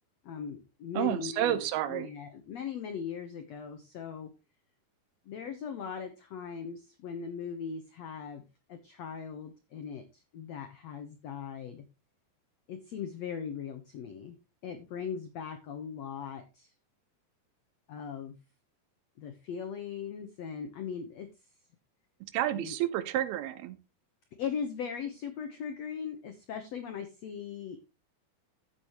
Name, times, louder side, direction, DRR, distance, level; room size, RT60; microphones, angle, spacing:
voice 1, 0.2-1.6 1.9-4.3 5.2-8.4 8.7-11.8 12.7-14.4 14.6-16.7 17.9-18.3 19.2-21.3 22.6-22.7 24.4-27.8, left 7 dB, 70° left, 6 dB, 1.6 m, -39 dB
voice 2, 0.9-2.1 22.2-23.8, right 12 dB, 80° right, 13 dB, 2.8 m, -30 dB
12.0 x 8.2 x 3.0 m, 0.27 s
omnidirectional pair, 4.5 m